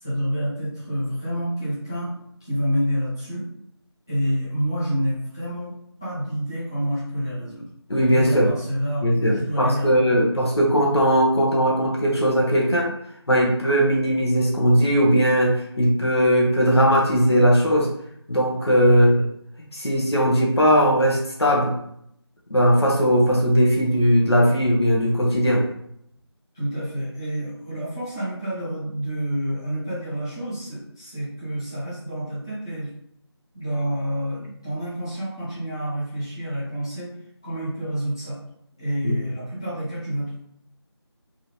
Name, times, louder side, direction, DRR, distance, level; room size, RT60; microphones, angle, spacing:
voice 1, 0.0-2.1 2.4-3.4 4.1-5.7 6.0-7.7 8.1-9.1 9.3-10.3 18.9-19.1 26.5-32.9 33.5-37.1 37.4-38.4 38.8-40.4, equal, 10° left, -13 dB, 0.9 m, -28 dB
voice 2, 7.9-8.5 9.0-12.9 13.3-17.9 18.3-19.2 19.7-21.7 22.5-25.7 39.0-39.2, equal, 65° left, -3 dB, 1.3 m, -19 dB
3.7 x 2.8 x 3.2 m, 0.72 s
figure-of-eight pair, 170°, 14 cm